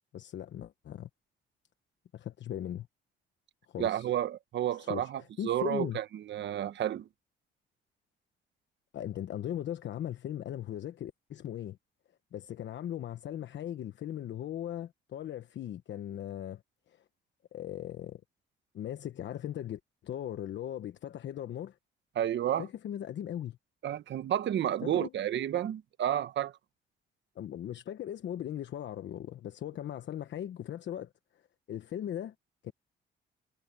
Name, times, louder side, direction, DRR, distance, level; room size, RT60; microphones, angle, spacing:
voice 1, 0.1-1.1 2.1-2.9 3.7-4.1 4.7-6.0 8.9-11.8 12.3-16.6 16.9-17.0 17.5-18.2 18.7-21.8 22.6-23.6 24.8-25.1 27.4-31.1 31.7-32.3 32.6-32.7, left 11 dB, 65° left, 1.1 m, -38 dB
voice 2, 3.8-7.1 22.1-22.7 23.8-26.5, right 11 dB, 65° right, 1.2 m, -31 dB
cardioid pair, 90°, 20 cm